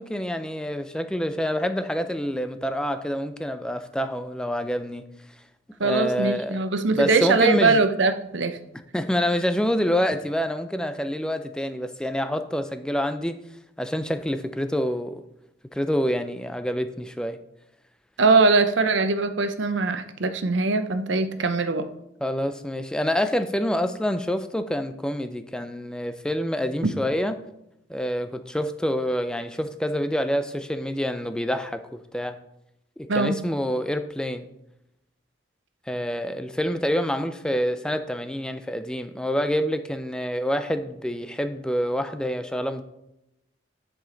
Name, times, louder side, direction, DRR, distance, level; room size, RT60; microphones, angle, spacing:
voice 1, 0.0-5.1 5.8-6.6 6.9-7.8 8.9-13.4 13.8-15.2 15.7-17.4 22.2-27.3 27.9-32.4 33.0-34.5 35.9-42.8, equal, 5° left, 9 dB, 0.3 m, -27 dB
voice 2, 5.8-8.6 18.2-21.9 26.8-26.9 33.1-33.4, right 3 dB, 85° right, 9 dB, 0.7 m, -21 dB
10.0 x 4.9 x 3.9 m, 0.87 s
head